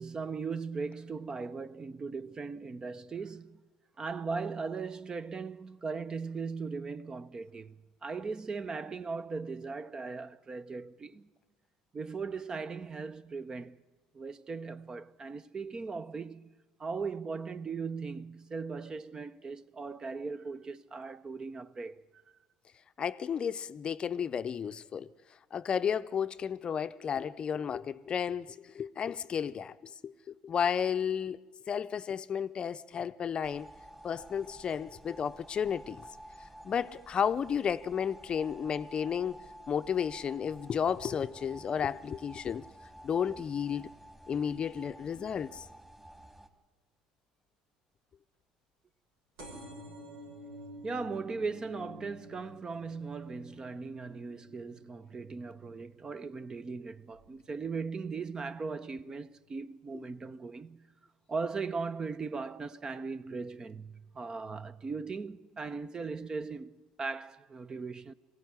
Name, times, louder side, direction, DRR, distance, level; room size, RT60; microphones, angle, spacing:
voice 1, 0.0-3.6 4.0-11.3 11.9-13.8 14.1-16.5 16.8-22.2 50.8-60.8 61.3-68.1, right 4 dB, 30° right, 0.8 m, -38 dB
voice 2, 23.0-25.1 25.5-29.8 30.0-30.1 30.4-31.4 31.7-33.7 34.0-36.0 36.6-39.4 39.7-42.6 43.0-43.9 44.3-45.6, left 7 dB, 40° left, 0.6 m, -32 dB
sound 1, 33.4-46.5, right 1 dB, 10° right, 2.6 m, -51 dB
sound 2, 49.4-56.6 57.1-57.6 58.4-58.5 58.7-58.8 59.0-59.1, equal, 85° right, 6.3 m, -51 dB
22.0 x 16.5 x 9.7 m
supercardioid pair, 80°, 3 cm